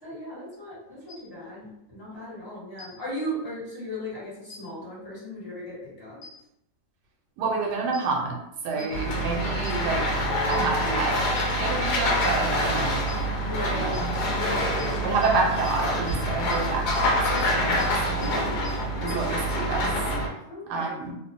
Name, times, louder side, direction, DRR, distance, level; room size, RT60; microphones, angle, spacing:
voice 1, 0.0-6.2 8.7-8.9 13.5-14.0 14.3-15.0 18.2-18.5 18.9-19.2 20.5-20.9, equal, 40° left, -9 dB, 1.4 m, -37 dB
sound 1, 1.1-1.2 2.8-2.9 4.5-4.6 6.2-6.3 7.9-8.0 8.8-8.9 9.6-9.7 10.5-10.6 11.4-11.5 12.2-12.3 13.1-13.2 13.9-14.0 14.8-14.9 15.2-15.3 15.6-15.7 16.1-16.2 16.5-16.6 16.9-17.0 17.4-17.5 17.8-17.9 18.2-18.3 18.6-18.7 19.1-19.2, left 4 dB, 90° left, 0.5 m, -42 dB
voice 2, 7.4-8.4 8.6-10.1 10.5-13.1 13.7-14.1 15.0-18.4 19.0-19.9 20.7-21.1, right 4 dB, 75° right, 0 dB, 1.2 m, -29 dB
sound 2, 8.9-20.3, equal, 75° left, 1.1 m, -26 dB
2.9 x 2.1 x 2.5 m, 0.81 s
omnidirectional pair, 1.8 m